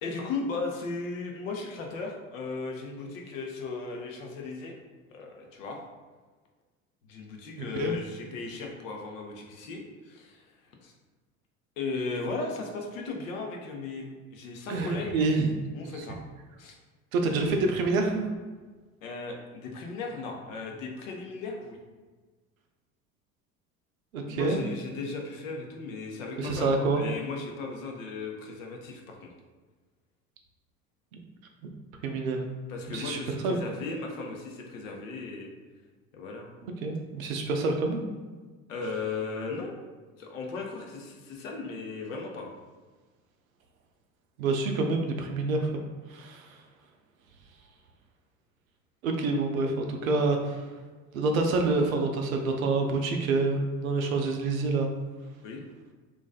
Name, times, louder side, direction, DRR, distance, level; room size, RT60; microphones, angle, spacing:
voice 1, 0.0-4.7 5.1-5.8 7.1-10.4 10.8-10.9 11.8-15.2 15.7-16.2 16.6-16.7 19.0-21.8 24.3-29.3 32.7-35.5 36.1-36.5 38.7-39.7 40.2-42.5 55.4-55.6, left 4 dB, 65° left, 1 dB, 0.6 m, -36 dB
voice 2, 14.7-15.5 16.0-16.1 17.1-18.3 24.1-24.7 26.4-27.0 32.0-32.4 32.9-33.2 33.4-33.6 36.8-38.1 44.4-45.8 46.1-46.5 49.0-50.6 51.1-54.9, right 3 dB, 70° right, 3 dB, 0.5 m, -27 dB
2.5 x 2.3 x 2.3 m, 1.3 s
figure-of-eight pair, 70°, 43 cm